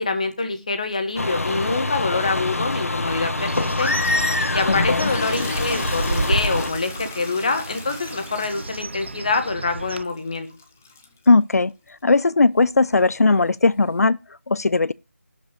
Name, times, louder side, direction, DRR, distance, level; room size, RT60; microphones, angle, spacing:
voice 1, 0.0-3.9 4.5-10.5, left 3 dB, 30° left, 1.5 m, -25 dB
sound 1, 1.2-6.7, left 2 dB, 70° left, 1.6 m, -25 dB
Bird, 3.4-10.0, right 3 dB, 50° right, 0.7 m, -31 dB
sound 2, 4.6-11.3 12.6-14.0, left 4 dB, 10° left, 0.5 m, -35 dB
voice 2, 4.7-5.1 11.3-11.7 12.0-14.2 14.5-14.9, left 3 dB, 90° left, 0.5 m, -18 dB
12.0 x 5.3 x 6.9 m
figure-of-eight pair, 175°, 8 cm